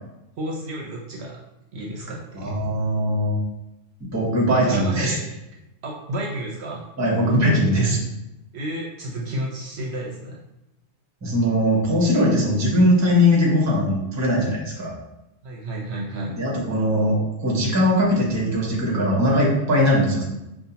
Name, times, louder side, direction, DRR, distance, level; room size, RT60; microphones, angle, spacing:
voice 1, 0.4-1.4 1.7-2.5 4.6-5.2 5.8-6.9 8.5-10.4 15.4-16.3, right 1 dB, 60° right, -3 dB, 0.9 m, -31 dB
voice 2, 2.4-3.4 4.0-5.1 7.0-8.0 11.2-14.9 16.4-20.2, equal, 15° right, -3 dB, 0.7 m, -20 dB
5.3 x 2.4 x 2.8 m, 0.91 s
omnidirectional pair, 1.3 m